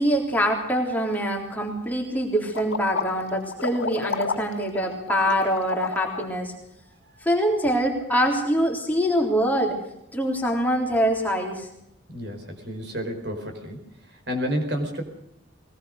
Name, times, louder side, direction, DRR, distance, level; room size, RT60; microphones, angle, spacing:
voice 1, 0.0-6.5 7.2-9.8 10.1-11.7, equal, 10° left, 0 dB, 3.6 m, -24 dB
sound 1, 2.5-6.4, left 5 dB, 85° left, 1.9 m, -31 dB
voice 2, 12.1-13.8 14.1-15.0, equal, 55° right, 4 dB, 4.8 m, -30 dB
21.5 x 19.0 x 6.6 m, 0.81 s
head